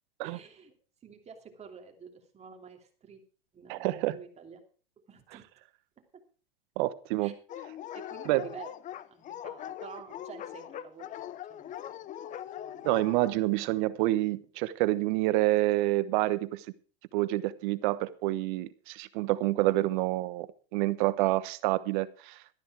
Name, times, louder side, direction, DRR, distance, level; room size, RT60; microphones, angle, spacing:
voice 1, 0.2-0.7 1.0-3.2 3.5-4.6 5.1-5.5 7.2-7.3 7.9-11.7 12.6-12.9 13.5-13.7, right 6 dB, 20° right, 3 dB, 2.9 m, -49 dB
voice 2, 3.7-4.2 6.8-7.3 8.2-8.4 12.8-16.6 17.1-22.4, right 17 dB, 55° right, 16 dB, 1.1 m, -28 dB
Dog, 7.5-13.4, left 11 dB, 25° left, 0.7 m, -41 dB
13.0 x 11.5 x 4.8 m, 0.38 s
hypercardioid pair, 120°, 30 cm